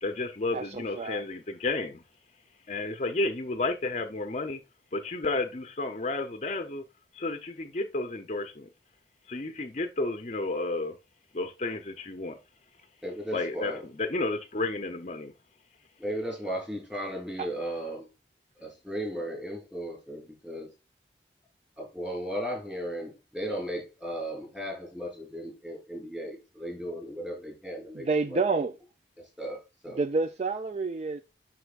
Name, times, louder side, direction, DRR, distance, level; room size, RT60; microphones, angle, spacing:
voice 1, 0.0-2.0 2.7-4.6 4.9-6.8 7.1-8.7 9.3-11.0 11.3-12.4 13.3-15.3, left 2 dB, 40° left, 0.6 m, -32 dB
voice 2, 0.5-1.3 17.4-17.5 27.9-28.8 29.9-31.2, right 4 dB, 35° right, 0.3 m, -29 dB
voice 3, 13.0-13.8 16.0-18.1 18.6-20.7 21.8-28.4 29.4-30.0, equal, 5° right, 3.2 m, -36 dB
7.9 x 5.8 x 2.4 m
head